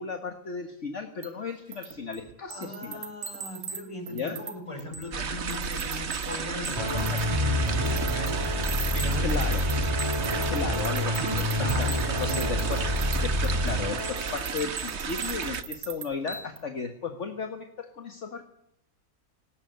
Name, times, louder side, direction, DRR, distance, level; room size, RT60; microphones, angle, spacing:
voice 1, 0.0-3.0 4.1-4.4 9.2-9.7 10.5-12.8 13.2-18.4, left 5 dB, 55° left, 6 dB, 1.9 m, -35 dB
sound 1, 1.2-1.3 1.7-3.8 4.1-4.5 4.8-5.2 5.5-7.2 7.7-13.2 13.4-16.6, right 6 dB, 80° right, 2.6 m, -39 dB
voice 2, 2.5-8.4 8.9-9.7 11.6-12.7, left 1 dB, 20° left, 3 dB, 6.3 m, -38 dB
sound 2, 5.1-15.6, right 6 dB, 50° right, 1.4 m, -33 dB
sound 3, 6.7-14.5, left 1 dB, 20° right, 2.6 m, -28 dB
19.0 x 18.0 x 8.1 m, 0.80 s
omnidirectional pair, 1.5 m